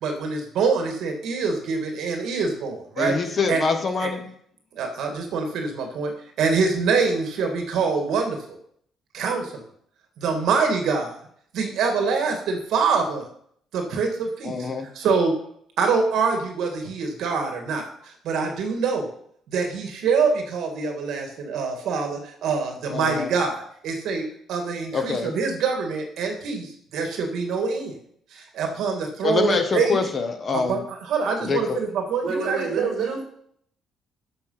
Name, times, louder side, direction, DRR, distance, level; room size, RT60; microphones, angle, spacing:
voice 1, 0.0-3.1 3.5-3.6 4.0-4.1 4.7-6.1 6.4-8.6 9.1-9.6 10.2-11.1 11.5-13.2 13.7-15.3 15.8-19.1 19.5-27.9 28.3-30.0 30.5-32.9, right 5 dB, 60° right, 3 dB, 2.2 m, -25 dB
voice 2, 3.0-4.3 14.4-14.9 22.9-23.3 24.9-25.4 29.2-30.8 31.4-31.8, left 4 dB, 25° left, 7 dB, 1.0 m, -25 dB
voice 3, 32.2-33.2, right 5 dB, 45° right, 1 dB, 3.7 m, -27 dB
13.5 x 6.3 x 5.7 m, 0.66 s
cardioid pair, 180°, 0 cm